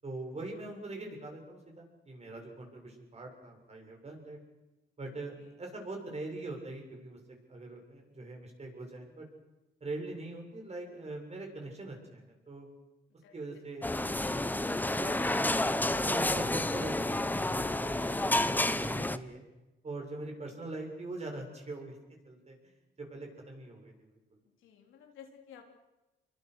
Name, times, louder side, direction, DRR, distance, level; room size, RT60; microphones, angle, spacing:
voice 1, 0.0-4.4 5.0-7.2 7.5-9.3 9.8-12.7 13.3-15.4 15.8-19.4 19.8-22.0 22.2-22.6 23.0-24.1, right 2 dB, 35° right, 2 dB, 7.5 m, -43 dB
sound 1, 13.8-19.2, left 1 dB, 10° left, 1.1 m, -30 dB
voice 2, 24.6-25.6, left 8 dB, 85° left, 3 dB, 3.9 m, -54 dB
26.5 x 23.0 x 6.5 m, 1.0 s
cardioid pair, 90°, 20 cm